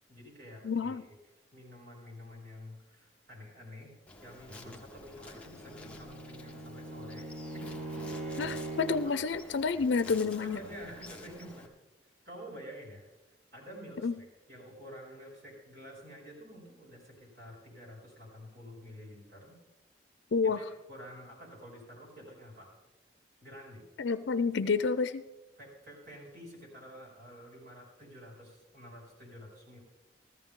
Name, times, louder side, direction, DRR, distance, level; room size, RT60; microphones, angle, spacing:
voice 1, 0.1-1.1 1.5-3.9 4.2-7.8 9.0-9.2 10.4-11.7 12.2-19.6 20.4-22.7 23.4-23.8 25.6-29.8, equal, 60° right, -3 dB, 4.8 m, -49 dB
voice 2, 0.6-1.0 8.4-10.6 14.0-14.1 20.3-20.6 24.0-25.2, left 5 dB, 75° left, 13 dB, 0.5 m, -29 dB
Insect, 4.1-11.7, left 2 dB, 5° left, 0.8 m, -50 dB
Bowed string instrument, 5.4-9.3, right 2 dB, 35° right, 1.2 m, -41 dB
15.0 x 14.0 x 3.7 m, 1.1 s
head